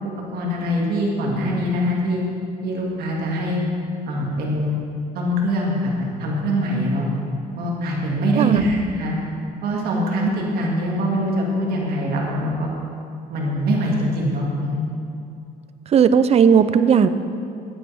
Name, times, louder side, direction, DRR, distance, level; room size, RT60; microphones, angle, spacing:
voice 1, 0.0-2.2 2.6-3.6 4.1-4.8 5.1-7.1 7.6-9.2 9.6-12.7 13.3-14.8, equal, 65° right, -2 dB, 2.1 m, -23 dB
voice 2, 8.4-8.7 15.9-17.1, right 7 dB, 40° right, 12 dB, 0.4 m, -15 dB
10.0 x 9.3 x 3.5 m, 2.6 s
cardioid pair, 110°, 17 cm